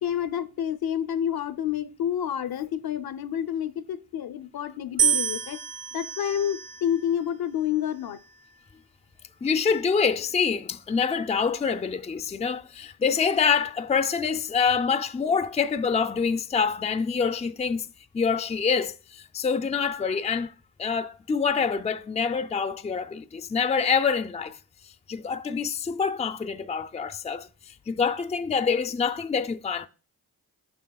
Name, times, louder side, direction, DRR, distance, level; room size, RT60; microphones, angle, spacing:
voice 1, 0.0-5.6 5.9-8.2, left 10 dB, 65° left, 0.6 m, -29 dB
sound 1, 5.0-7.2 8.0-8.5, right 8 dB, 70° right, 0.8 m, -28 dB
voice 2, 9.4-17.9 18.1-20.5 20.8-24.6 25.1-29.9, left 6 dB, 15° left, 0.4 m, -26 dB
9.3 x 6.1 x 2.3 m
cardioid pair, 80°, 39 cm